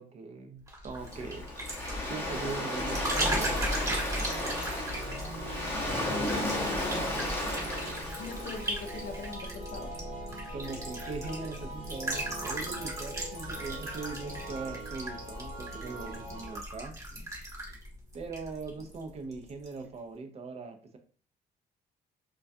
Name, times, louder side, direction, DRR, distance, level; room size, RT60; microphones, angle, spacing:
voice 1, 0.0-1.5 2.1-3.4 10.5-16.9 18.1-21.0, right 4 dB, 40° right, 5 dB, 0.4 m, -40 dB
sound 1, 0.7-19.0 19.3-19.7, equal, 20° right, 0.8 m, -37 dB
Waves surf, 1.0-9.2, left 1 dB, 15° left, 0.7 m, -34 dB
sound 2, 3.1-16.6, right 2 dB, 55° right, 1.0 m, -43 dB
voice 2, 6.1-7.2 8.2-10.0, left 4 dB, 60° left, 4 dB, 0.5 m, -41 dB
2.3 x 2.2 x 2.5 m, 0.42 s
cardioid pair, 115°, 16 cm